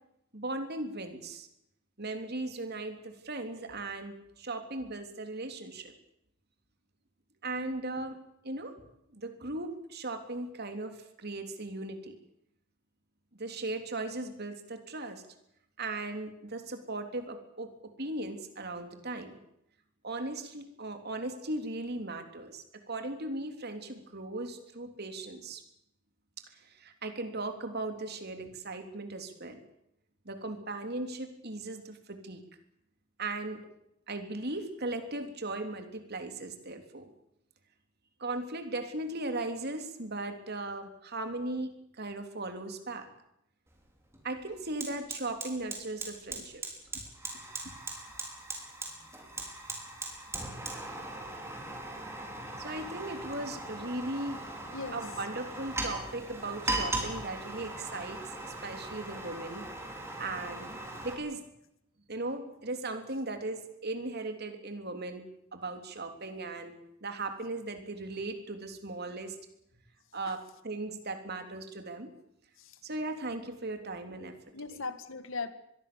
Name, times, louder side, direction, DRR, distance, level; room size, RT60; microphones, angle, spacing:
voice 1, 0.3-1.5 2.0-5.9 7.4-8.2 8.4-8.7 9.1-12.2 13.4-15.2 15.8-17.7 18.0-19.4 20.0-25.6 26.5-29.6 30.2-32.4 33.2-33.6 34.1-37.1 38.2-41.7 42.0-43.1 44.2-46.6 47.3-47.4 52.6-54.4 54.9-58.2 58.6-59.6 60.2-60.7 61.0-61.4 62.1-65.2 65.5-66.7 67.0-69.3 70.1-72.1 72.8-74.4, right 2 dB, 50° right, 6 dB, 3.5 m, -37 dB
Fire, 43.7-43.8 44.1-61.1, right 2 dB, 15° right, 5.0 m, -39 dB
voice 2, 54.7-55.0 72.6-72.8 74.1-74.2 74.5-75.5, left 4 dB, 65° left, 11 dB, 2.1 m, -38 dB
25.0 x 21.5 x 7.1 m, 0.78 s
head